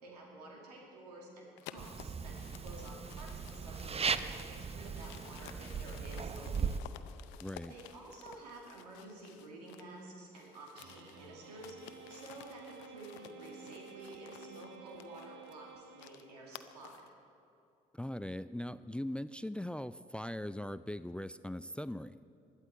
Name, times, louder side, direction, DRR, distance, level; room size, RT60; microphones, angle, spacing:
voice 1, 0.0-6.8 7.7-11.8 12.1-17.0, right 2 dB, 85° right, -1 dB, 2.2 m, -51 dB
sound 1, 1.6-10.0 10.3-17.1, left 12 dB, 75° left, 0.6 m, -55 dB
sound 2, 1.8-6.8, right 6 dB, 30° right, 0.7 m, -38 dB
voice 2, 7.4-7.7 17.9-22.2, left 1 dB, 5° left, 15 dB, 0.4 m, -40 dB
sound 3, 10.8-16.6, right 6 dB, 70° right, 1.3 m, -53 dB
20.5 x 12.0 x 4.5 m, 2.7 s
hypercardioid pair, 45°, 20 cm